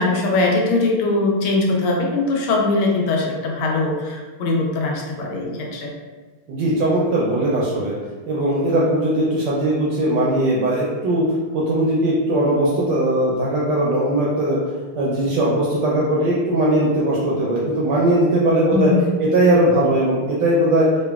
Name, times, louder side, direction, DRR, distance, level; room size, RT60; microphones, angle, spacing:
voice 1, 0.0-5.9 18.7-19.0, left 3 dB, 85° left, -1 dB, 1.5 m, -21 dB
voice 2, 6.5-7.9 8.3-11.3 11.5-14.6 15.0-18.9 19.2-20.9, right 1 dB, 75° right, -5 dB, 1.0 m, -19 dB
3.8 x 2.2 x 2.2 m, 1.3 s
omnidirectional pair, 2.4 m